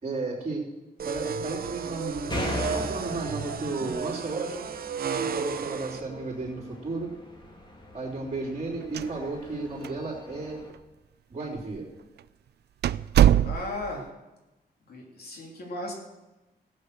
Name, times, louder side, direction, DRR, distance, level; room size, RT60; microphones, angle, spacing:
voice 1, 0.0-0.6 1.1-4.7 5.2-7.1 7.9-10.6 11.3-11.9, right 3 dB, 40° right, -8 dB, 3.6 m, -33 dB
sound 1, 1.0-6.0, right 6 dB, 60° right, 0.8 m, -33 dB
sound 2, 2.3-10.7, left 1 dB, 25° left, 2.7 m, -39 dB
sound 3, 8.8-9.6 9.8-9.9 10.7-10.8 11.6-11.8 12.2-12.3 12.8-14.0, right 11 dB, 75° right, 0.4 m, -22 dB
voice 2, 13.4-14.1 14.9-15.9, left 1 dB, 65° left, 0 dB, 3.2 m, -36 dB
16.5 x 8.7 x 6.6 m, 1.0 s
wide cardioid pair, 135°, 17 cm